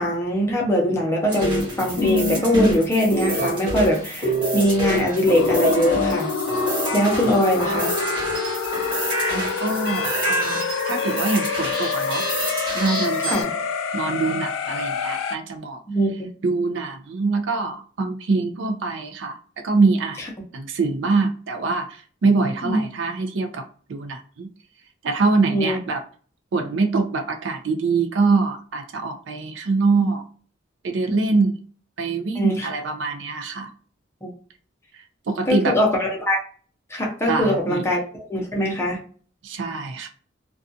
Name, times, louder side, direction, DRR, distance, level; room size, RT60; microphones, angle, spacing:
voice 1, 0.0-6.3 6.9-7.9 13.3-13.5 15.9-16.3 22.6-22.8 25.5-25.8 32.3-32.7 34.2-34.3 35.5-36.4 36.9-39.0, equal, 15° left, -1 dB, 0.6 m, -22 dB
sound 1, 1.3-13.4, equal, 25° right, 1.2 m, -26 dB
sound 2, 5.3-15.4, left 5 dB, 80° left, 0.3 m, -27 dB
voice 2, 9.3-12.3 12.7-13.4 13.9-15.8 16.4-19.4 19.6-20.2 20.5-24.5 25.0-26.0 26.5-30.2 30.8-31.6 32.0-33.7 35.3-35.8 37.3-37.8 39.4-40.1, right 3 dB, 60° right, 6 dB, 0.4 m, -24 dB
2.4 x 2.3 x 2.6 m, 0.42 s
head